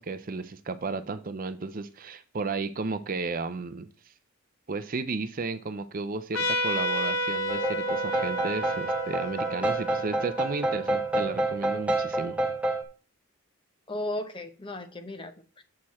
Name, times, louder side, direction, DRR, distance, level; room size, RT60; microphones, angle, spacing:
voice 1, 0.0-3.9 4.7-12.4, right 3 dB, 40° right, 12 dB, 0.5 m, -33 dB
Trumpet, 6.3-11.4, equal, 60° left, 1.4 m, -31 dB
sound 1, 7.5-12.8, right 2 dB, 5° right, 1.3 m, -29 dB
voice 2, 13.9-15.6, left 1 dB, 25° left, 7 dB, 0.8 m, -35 dB
7.6 x 6.7 x 4.2 m, 0.36 s
head